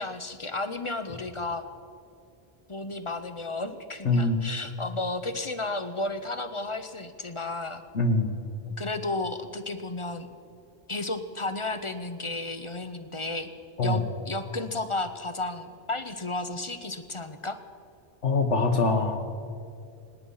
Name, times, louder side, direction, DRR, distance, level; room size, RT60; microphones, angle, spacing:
voice 1, 0.0-1.7 2.7-7.8 8.8-10.3 10.9-13.5 13.8-17.6, left 2 dB, 30° left, 9 dB, 0.7 m, -33 dB
voice 2, 4.1-4.4 7.9-8.3 13.8-14.0 18.2-19.3, left 3 dB, 85° left, 6 dB, 1.7 m, -23 dB
25.5 x 10.0 x 5.6 m, 2.4 s
omnidirectional pair, 1.2 m